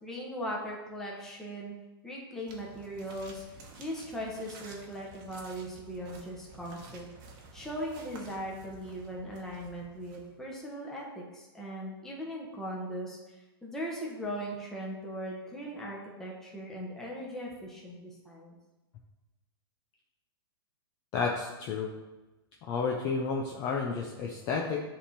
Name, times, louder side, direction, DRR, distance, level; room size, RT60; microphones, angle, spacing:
voice 1, 0.0-1.7 2.0-3.4 3.8-7.1 7.5-18.6, equal, 5° left, -4 dB, 1.2 m, -39 dB
sound 1, 2.5-10.6, right 3 dB, 35° right, 1.2 m, -52 dB
voice 2, 21.1-21.9 22.7-24.8, left 5 dB, 30° left, -1 dB, 0.7 m, -31 dB
10.0 x 3.7 x 4.3 m, 1.1 s
hypercardioid pair, 155°, 13 cm